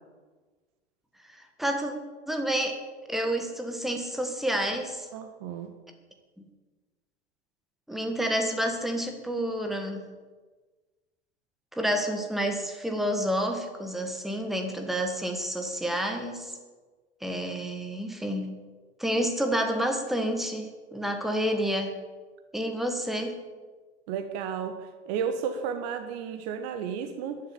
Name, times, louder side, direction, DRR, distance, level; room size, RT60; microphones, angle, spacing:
voice 1, 1.3-1.9 2.3-2.8 3.1-5.1 7.9-10.1 11.7-16.5 17.2-18.6 19.0-22.0 22.5-23.4, equal, ahead, 5 dB, 1.6 m, -29 dB
voice 2, 5.1-5.7 24.1-27.4, right 7 dB, 40° right, 8 dB, 1.2 m, -33 dB
11.0 x 10.5 x 7.1 m, 1.3 s
figure-of-eight pair, 95°, 33 cm